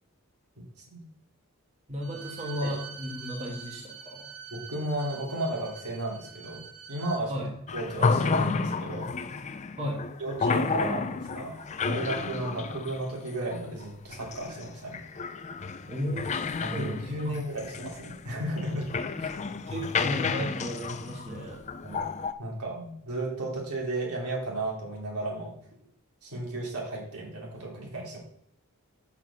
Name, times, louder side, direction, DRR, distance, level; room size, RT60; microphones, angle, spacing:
voice 1, 0.6-1.0 2.6-2.7 4.5-7.3 7.7-9.1 10.2-11.6 11.8-15.0 16.6-19.3 21.8-22.0 22.4-25.6 26.2-28.2, right 1 dB, 85° right, -3 dB, 3.1 m, -34 dB
voice 2, 1.9-4.2 7.3-7.5 9.8-10.1 15.9-16.3 16.7-17.4 19.7-21.6, equal, 30° right, -1 dB, 1.5 m, -34 dB
Bowed string instrument, 2.0-7.2, right 6 dB, 55° right, 2.3 m, -45 dB
sound 1, 7.7-22.3, left 4 dB, 30° left, 0.4 m, -31 dB
7.1 x 5.8 x 5.6 m, 0.72 s
head